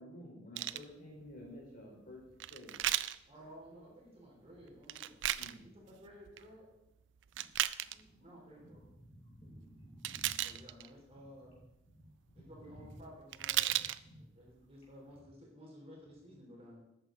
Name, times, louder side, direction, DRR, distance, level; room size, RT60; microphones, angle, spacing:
voice 1, 0.0-2.7 5.4-5.7, equal, 50° left, -3 dB, 3.8 m, -51 dB
sound 1, 0.6-0.8 2.4-3.2 4.8-5.5 6.1-6.4 7.2-8.0 10.0-10.9 13.0-13.1 13.3-14.0 14.6-14.7, right 13 dB, 75° right, 0.4 m, -34 dB
voice 2, 3.3-5.2 5.6-6.6 8.2-8.8 10.4-11.5 12.3-13.8 14.3-16.8, equal, 30° right, -2 dB, 3.3 m, -54 dB
voice 3, 7.9-8.4 8.7-10.4 14.0-14.2, equal, 30° left, -4 dB, 4.8 m, -55 dB
12.5 x 9.0 x 3.8 m, 0.90 s
head